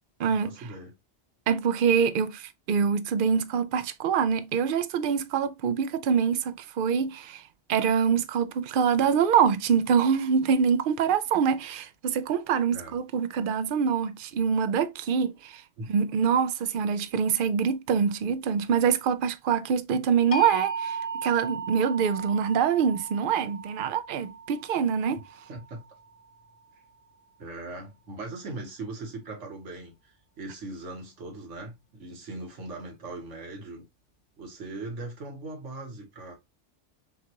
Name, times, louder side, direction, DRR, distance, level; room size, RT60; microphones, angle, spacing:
voice 1, 0.2-0.9 12.7-13.0 15.8-15.9 25.5-25.8 27.4-33.8 34.4-36.4, right 2 dB, 75° right, 1.6 m, -40 dB
voice 2, 1.5-7.4 7.7-15.6 15.9-25.2, right 7 dB, 60° right, 0.6 m, -25 dB
sound 1, 20.3-26.3, right 4 dB, 35° left, 0.6 m, -36 dB
6.5 x 2.4 x 2.8 m
omnidirectional pair, 1.3 m